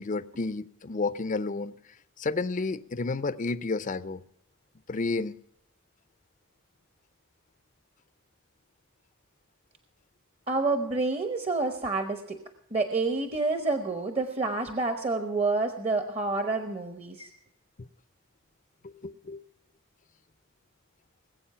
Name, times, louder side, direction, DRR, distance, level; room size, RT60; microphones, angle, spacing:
voice 1, 0.0-1.7 2.2-4.2 4.9-5.4 17.8-17.9 18.8-19.4, left 3 dB, 40° left, 0.6 m, -31 dB
voice 2, 10.5-12.4 12.7-17.3, right 3 dB, 30° right, 1.0 m, -28 dB
20.0 x 8.1 x 5.6 m
head